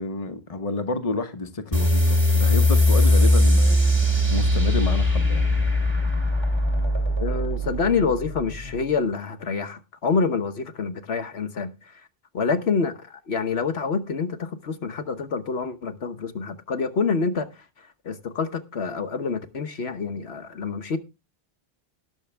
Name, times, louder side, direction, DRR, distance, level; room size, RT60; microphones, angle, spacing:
voice 1, 0.0-3.8 4.3-5.5, left 3 dB, 35° left, 1.1 m, -29 dB
sound 1, 1.7-8.8, left 1 dB, 25° right, 2.4 m, -20 dB
voice 2, 7.2-11.7 12.3-17.5 18.0-21.0, left 5 dB, 75° left, 1.3 m, -27 dB
19.0 x 6.5 x 3.4 m
omnidirectional pair, 1.1 m